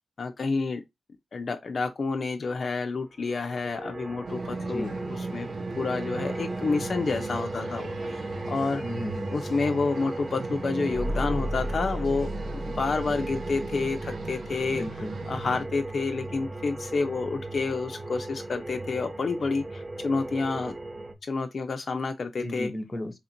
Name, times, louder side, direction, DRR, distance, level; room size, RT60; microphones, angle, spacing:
voice 1, 0.2-0.8 1.3-5.5 5.8-8.8 9.3-12.3 12.8-14.8 15.3-20.7 21.3-22.7, left 4 dB, 55° left, 0.4 m, -29 dB
sound 1, 3.3-21.1, right 2 dB, 20° right, 0.6 m, -37 dB
sound 2, 4.3-15.6, right 4 dB, 85° right, 0.7 m, -39 dB
voice 2, 4.6-4.9 8.8-9.3 14.7-15.2 22.4-23.2, left 1 dB, 25° left, 0.7 m, -34 dB
sound 3, 10.9-15.6, equal, 65° right, 1.2 m, -35 dB
3.4 x 2.6 x 4.2 m
wide cardioid pair, 105°, 0 cm